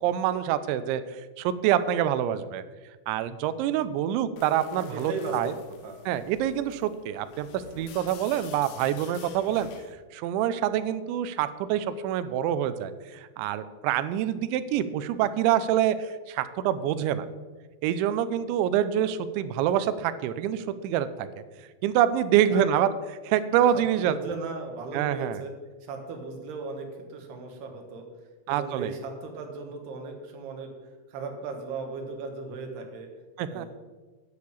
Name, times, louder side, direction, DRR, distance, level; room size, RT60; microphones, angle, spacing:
voice 1, 0.0-2.6 3.1-5.5 6.1-9.7 10.1-17.3 17.8-21.3 21.8-22.9 23.2-24.2 24.9-25.4 28.5-28.9 33.4-33.7, right 10 dB, 80° right, 12 dB, 2.7 m, -26 dB
sound 1, 4.4-10.0, left 6 dB, 80° left, 3.5 m, -47 dB
voice 2, 4.9-5.6 5.8-6.0 22.5-22.6 23.7-25.5 25.8-28.1 28.5-30.7 31.1-33.1 33.4-33.7, right 4 dB, 65° right, 3 dB, 3.1 m, -37 dB
10.5 x 6.5 x 8.5 m, 1.3 s
omnidirectional pair, 5.9 m